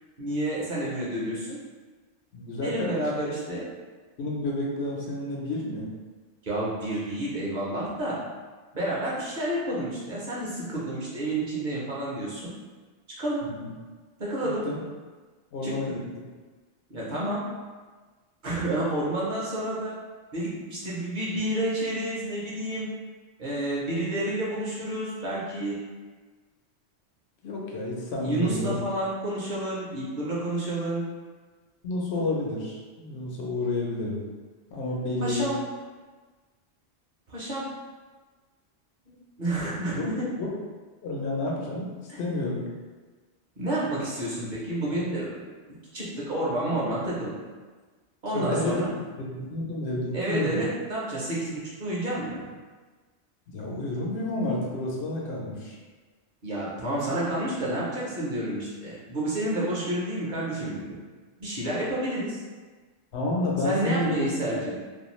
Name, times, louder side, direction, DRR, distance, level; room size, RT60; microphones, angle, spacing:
voice 1, 0.2-1.6 2.5-3.6 6.4-8.2 8.7-12.5 13.2-13.5 14.2-14.7 15.6-16.0 16.9-17.5 18.4-19.9 20.3-22.9 23.4-25.8 28.2-31.1 35.2-35.6 37.3-37.7 39.1-40.3 43.6-45.4 45.9-47.3 48.2-48.9 50.1-52.4 56.4-61.0 61.4-62.4 63.6-64.7, right 1 dB, 50° right, -6 dB, 0.7 m, -30 dB
voice 2, 2.3-3.1 4.2-5.9 13.6-13.7 14.6-14.8 15.5-16.0 27.4-28.8 31.8-34.2 34.7-35.5 40.0-40.5 41.0-42.6 44.9-45.0 48.3-48.8 49.2-50.6 53.5-55.8 63.1-64.2, left 2 dB, 75° left, -3 dB, 0.9 m, -30 dB
2.5 x 2.3 x 3.0 m, 1.4 s
omnidirectional pair, 1.1 m